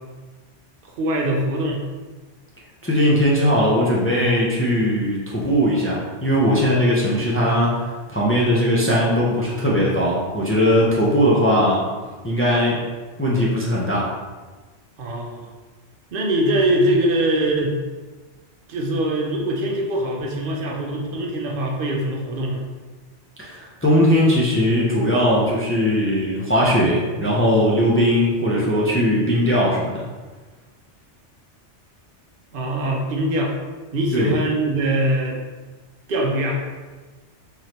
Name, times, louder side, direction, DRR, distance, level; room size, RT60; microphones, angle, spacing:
voice 1, 1.0-1.8 15.0-15.4 16.1-17.7 18.7-22.6 32.5-33.5 33.9-35.4 36.1-36.6, right 1 dB, 55° right, -1 dB, 0.8 m, -22 dB
voice 2, 2.8-7.8 8.1-11.8 12.2-12.8 13.2-14.1 23.4-30.0 34.1-34.4, equal, 20° left, -5 dB, 0.4 m, -19 dB
3.8 x 3.2 x 2.8 m, 1.3 s
omnidirectional pair, 1.2 m